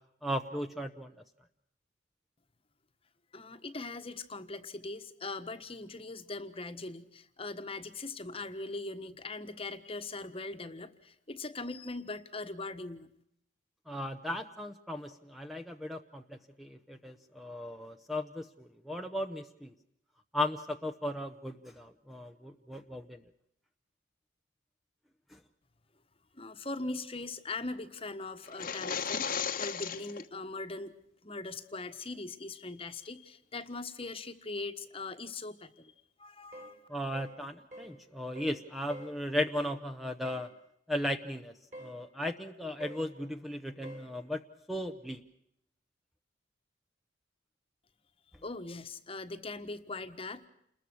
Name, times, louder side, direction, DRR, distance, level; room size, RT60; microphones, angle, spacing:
voice 1, 0.2-1.1 13.9-19.7 20.3-23.2 25.3-25.4 36.9-40.5 40.9-41.5 41.8-44.4 44.7-45.2, left 1 dB, ahead, 6 dB, 0.9 m, -36 dB
voice 2, 3.3-13.1 26.3-30.9 31.2-35.9 36.2-36.8 48.4-50.5, left 3 dB, 30° left, 8 dB, 1.4 m, -41 dB
sound 1, 28.5-30.3, left 7 dB, 45° left, 1.3 m, -35 dB
sound 2, 36.5-36.8 37.1-37.4 37.7-38.0 38.4-38.6 38.9-39.2 40.3-40.5 41.7-42.0 42.8-43.1 43.8-44.1, equal, 40° right, 5.7 m, -46 dB
29.0 x 21.5 x 6.3 m, 0.74 s
head